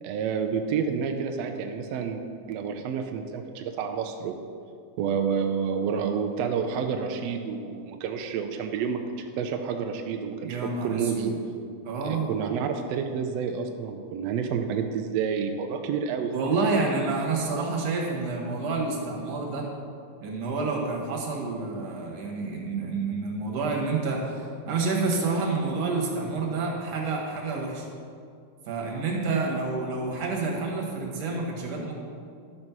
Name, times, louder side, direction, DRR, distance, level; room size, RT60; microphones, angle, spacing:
voice 1, 0.0-2.2 2.5-4.5 5.0-11.4 12.0-16.3, right 6 dB, 85° right, 5 dB, 1.5 m, -29 dB
voice 2, 10.4-11.3 11.8-12.3 16.3-19.7 20.2-27.9 28.7-31.9, right 3 dB, 60° right, -2 dB, 2.5 m, -28 dB
11.0 x 5.3 x 6.0 m, 2.3 s
omnidirectional pair, 3.5 m